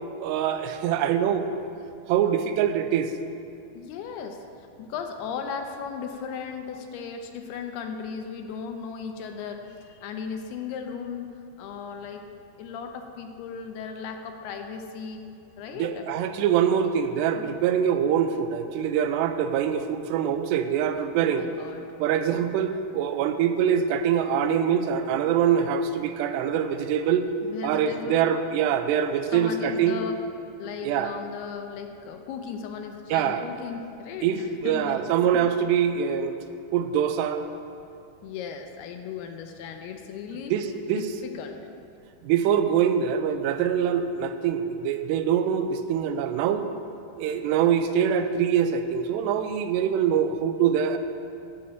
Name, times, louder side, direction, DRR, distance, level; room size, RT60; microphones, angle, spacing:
voice 1, 0.2-1.7 2.1-3.1 15.8-21.5 22.0-27.3 27.6-30.0 30.8-31.1 33.1-33.5 34.2-36.4 36.7-37.4 40.5-41.1 42.2-46.7 47.2-51.0, right 8 dB, 90° right, 9 dB, 2.7 m, -24 dB
voice 2, 3.7-11.3 11.6-12.3 12.6-15.3 15.6-16.1 17.4-17.5 21.1-21.9 27.4-28.2 29.3-30.2 30.6-35.0 35.3-35.4 38.2-40.5 40.9-41.7, left 6 dB, 80° left, 5 dB, 2.6 m, -36 dB
11.5 x 5.5 x 8.5 m, 2.7 s
omnidirectional pair, 4.8 m